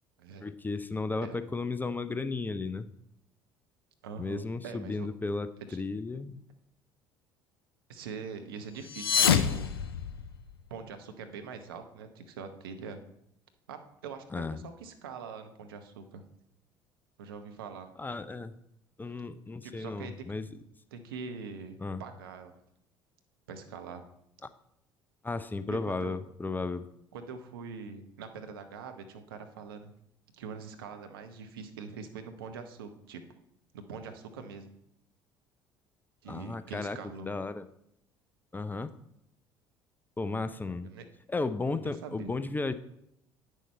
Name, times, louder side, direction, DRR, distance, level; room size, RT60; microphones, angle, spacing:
voice 1, 0.4-2.9 4.2-6.4 14.3-14.6 18.0-18.5 19.0-20.6 21.8-22.0 25.2-26.9 36.3-37.0 37.2-37.7 38.5-38.9 40.2-40.9 41.3-42.7, left 3 dB, 15° left, 12 dB, 0.5 m, -34 dB
voice 2, 4.0-5.1 5.7-5.8 7.9-9.7 10.7-13.0 13.7-16.2 17.2-17.9 19.6-20.3 20.9-22.5 23.5-24.0 25.7-26.2 27.1-29.9 30.3-33.2 33.7-34.7 36.2-37.3 40.8-41.0 41.7-42.3, right 5 dB, 70° right, 7 dB, 0.9 m, -43 dB
sound 1, 8.8-10.7, left 7 dB, 80° left, 0.5 m, -27 dB
9.0 x 6.4 x 4.2 m, 0.77 s
figure-of-eight pair, 60°, 12 cm